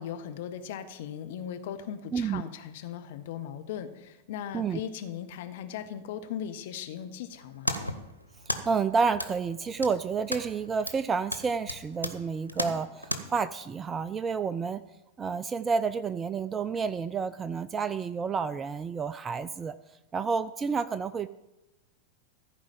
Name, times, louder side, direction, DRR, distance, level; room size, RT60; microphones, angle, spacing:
voice 1, 0.0-7.7, left 9 dB, 55° left, 9 dB, 0.8 m, -38 dB
sound 1, 7.3-13.2, equal, 90° right, 0.8 m, -36 dB
voice 2, 8.5-14.8 15.2-19.8 20.1-21.3, right 5 dB, 20° right, 14 dB, 0.3 m, -30 dB
14.5 x 4.8 x 7.3 m, 0.97 s
figure-of-eight pair, 90°, 0 cm